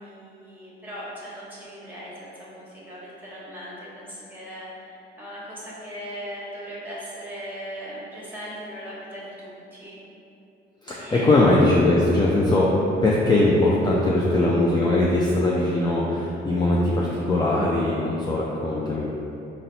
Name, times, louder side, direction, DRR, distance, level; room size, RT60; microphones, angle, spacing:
voice 1, 0.0-9.9 11.0-11.7, equal, 10° right, -8 dB, 1.0 m, -38 dB
voice 2, 10.8-12.7 13.0-19.1, left 2 dB, 20° left, -5 dB, 0.3 m, -20 dB
3.9 x 2.0 x 2.7 m, 2.8 s
cardioid pair, 90°, 20 cm